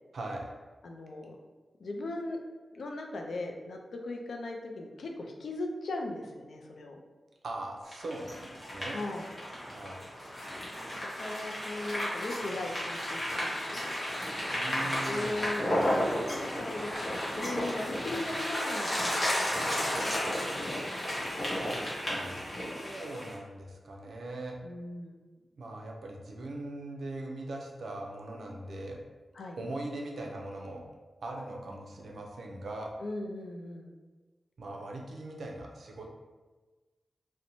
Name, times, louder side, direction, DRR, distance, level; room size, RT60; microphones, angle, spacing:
voice 1, 0.1-0.5 7.4-9.0 9.7-10.0 14.5-15.4 21.6-24.6 25.6-29.0 29.6-30.8 31.2-32.9 34.6-36.1, right 2 dB, 70° right, 0 dB, 0.4 m, -40 dB
voice 2, 0.8-1.4 1.8-2.4 2.7-7.0 8.9-9.3 11.0-14.3 14.8-20.9 24.6-25.2 29.3-29.6 33.0-33.9, left 2 dB, 80° left, 1 dB, 0.3 m, -39 dB
sound 1, 7.9-23.3, equal, 30° left, 0.8 m, -33 dB
sound 2, 8.0-19.0, equal, 40° right, 1.1 m, -47 dB
2.6 x 2.0 x 2.9 m, 1.3 s
wide cardioid pair, 160°, 0 cm